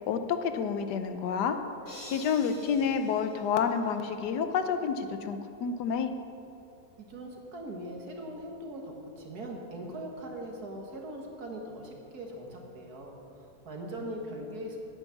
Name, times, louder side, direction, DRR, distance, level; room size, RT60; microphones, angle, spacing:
voice 1, 0.0-1.6 2.1-6.1, left 6 dB, 80° left, 8 dB, 1.3 m, -29 dB
sound 1, 1.9-4.2, left 1 dB, 50° left, 3.1 m, -49 dB
voice 2, 7.0-13.1 13.4-14.8, right 1 dB, 65° right, 1 dB, 2.0 m, -40 dB
9.6 x 9.1 x 7.0 m, 2.8 s
omnidirectional pair, 1.8 m